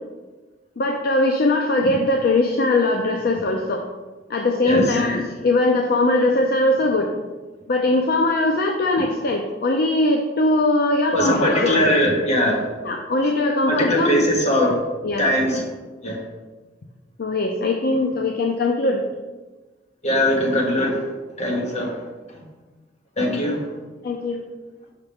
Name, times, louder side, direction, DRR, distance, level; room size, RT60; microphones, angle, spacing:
voice 1, 0.8-3.8 4.3-7.1 7.7-12.0 12.8-14.2 15.0-15.3 17.2-19.1 24.0-24.4, left 2 dB, 60° left, 2 dB, 0.5 m, -20 dB
voice 2, 4.6-5.0 11.1-12.6 13.7-14.8 15.2-15.6 16.0-16.2 20.0-21.0 21.4-22.0 23.2-23.6, equal, 40° left, -1 dB, 1.4 m, -20 dB
5.7 x 5.7 x 3.5 m, 1.3 s
head